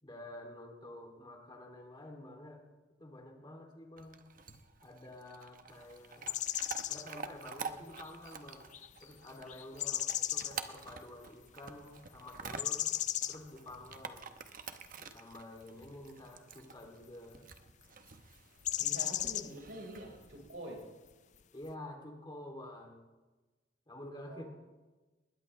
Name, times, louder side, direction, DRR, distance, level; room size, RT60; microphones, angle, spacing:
voice 1, 0.0-2.6 3.0-4.2 4.8-6.4 6.9-12.9 13.3-14.3 15.0-17.5 21.5-23.1 23.9-24.5, left 1 dB, 25° left, 2 dB, 2.6 m, -49 dB
Chewing mastication / Dog, 4.0-20.5, right 5 dB, 50° right, 0.9 m, -49 dB
sound 1, 6.3-7.0 8.0-8.3 8.7-9.0 9.5-10.6 12.6-13.4 18.6-19.5, left 12 dB, 40° left, 0.5 m, -35 dB
voice 2, 18.8-20.8 24.3-24.5, right 1 dB, 70° right, 0 dB, 4.6 m, -46 dB
21.0 x 20.0 x 3.2 m, 1.2 s
head